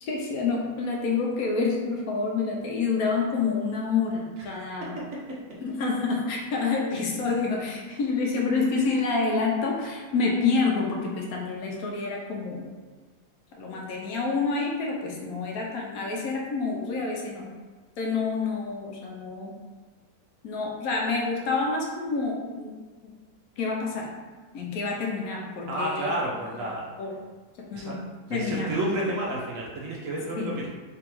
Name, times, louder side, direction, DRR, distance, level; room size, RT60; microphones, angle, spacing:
voice 1, 0.0-5.0 5.6-12.7 13.6-17.5 18.0-19.6 20.4-22.8 23.0-23.1 23.6-24.1 24.5-26.2 26.6-26.7 27.0-27.2 27.6-28.0 28.3-28.8 30.4-30.6, left 4 dB, 70° left, -1 dB, 1.0 m, -28 dB
voice 2, 25.7-26.8 27.7-28.0 28.3-30.7, right 1 dB, 65° right, -4 dB, 1.0 m, -30 dB
3.4 x 2.9 x 3.0 m, 1.4 s
omnidirectional pair, 1.7 m